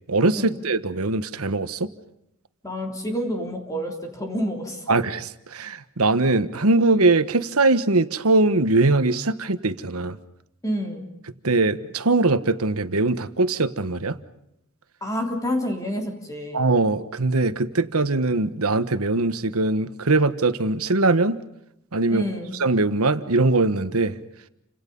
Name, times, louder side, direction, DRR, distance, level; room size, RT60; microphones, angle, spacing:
voice 1, 0.1-1.9 4.9-10.2 11.4-14.2 16.5-21.4 21.9-22.2 22.6-24.2, right 2 dB, 85° right, 11 dB, 1.4 m, -21 dB
voice 2, 2.6-5.0 10.6-11.1 15.0-16.6 22.1-22.6, equal, 15° left, 2 dB, 3.4 m, -28 dB
30.0 x 26.0 x 5.4 m, 0.82 s
head